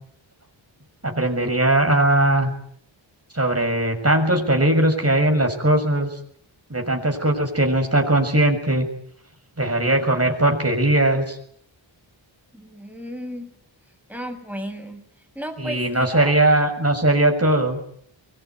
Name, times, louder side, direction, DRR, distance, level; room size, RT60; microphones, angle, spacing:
voice 1, 1.0-2.5 3.3-6.1 6.7-8.9 9.6-11.4 15.6-17.8, right 1 dB, 30° right, 3 dB, 6.6 m, -19 dB
voice 2, 12.5-13.5 14.1-15.0 15.4-16.3, equal, 5° right, 6 dB, 6.9 m, -34 dB
25.0 x 22.5 x 9.6 m, 0.66 s
wide cardioid pair, 55°, 47 cm